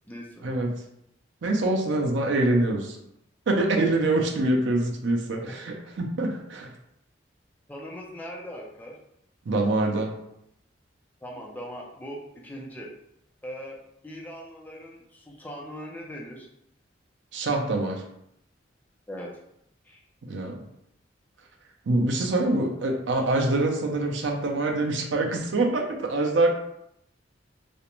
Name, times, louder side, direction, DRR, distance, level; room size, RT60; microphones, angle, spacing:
voice 1, 0.1-0.4 5.4-5.5 7.7-9.0 11.2-12.9 13.4-13.8 14.0-16.5 19.1-19.4 19.8-20.0, equal, 10° left, -2 dB, 0.4 m, -40 dB
voice 2, 1.4-3.0 3.5-6.7 9.5-10.1 17.3-18.0 20.3-20.6 21.9-26.5, right 2 dB, 75° right, 2 dB, 0.5 m, -25 dB
2.4 x 2.1 x 2.9 m, 0.77 s
head